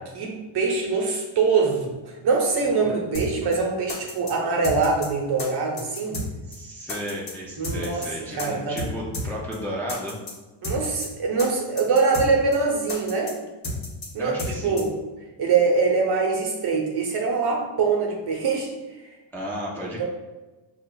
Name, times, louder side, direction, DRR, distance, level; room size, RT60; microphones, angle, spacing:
voice 1, 0.1-2.0 2.2-6.2 7.6-8.0 8.3-8.9 10.6-13.3 14.1-14.3 14.6-14.9 15.4-18.8 19.8-20.0, right 4 dB, 55° right, 0 dB, 0.9 m, -23 dB
voice 2, 2.6-3.1 6.4-10.2 14.2-14.8 19.3-20.0, equal, 5° left, -4 dB, 0.4 m, -34 dB
sound 1, 3.1-3.3 3.5-3.6 3.9-4.3 4.6-5.1 5.4-5.5 5.8-6.3 6.5-6.6 6.9-7.3 7.6-8.1 8.4-8.5 8.8-8.9 9.1-9.3 9.5-9.6 9.9-10.3 10.6-11.1 11.4-11.5 11.8-12.3 12.5-12.6 12.9-13.3 13.6-14.1 14.4-14.5 14.8-14.9, left 1 dB, 45° left, 1.1 m, -31 dB
5.9 x 2.5 x 2.2 m, 1.2 s
cardioid pair, 145°, 48 cm